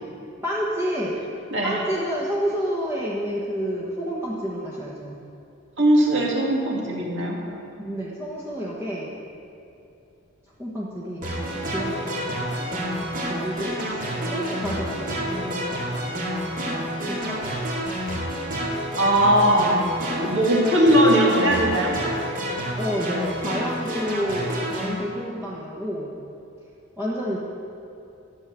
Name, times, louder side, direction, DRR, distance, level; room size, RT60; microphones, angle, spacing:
voice 1, 0.4-1.2 1.6-5.1 7.8-9.1 10.6-13.8 14.2-15.9 16.7-17.8 22.8-26.1 27.0-27.4, equal, 10° right, -7 dB, 1.2 m, -30 dB
voice 2, 5.8-7.4 14.1-14.2 19.0-19.8 20.2-21.9, right 1 dB, 60° right, -2 dB, 2.2 m, -19 dB
sound 1, 11.2-24.9, equal, 40° right, 2.3 m, -29 dB
12.5 x 6.5 x 7.4 m, 2.7 s
head